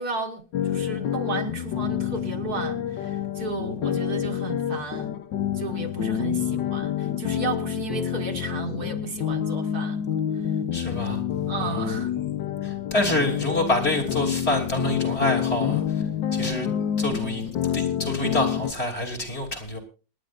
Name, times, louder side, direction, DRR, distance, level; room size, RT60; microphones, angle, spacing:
voice 1, 0.0-5.1 5.5-10.0 10.4-10.5 11.5-12.1, right 4 dB, 60° right, 4 dB, 1.8 m, -34 dB
sound 1, 0.5-18.7, left 9 dB, 85° left, 1.6 m, -28 dB
voice 2, 10.7-11.2 11.6-11.9 12.6-15.8 16.3-16.7 17.0-17.4 17.7-19.8, left 1 dB, 35° left, 4 dB, 3.3 m, -27 dB
27.0 x 10.5 x 2.5 m, 0.34 s
omnidirectional pair, 1.9 m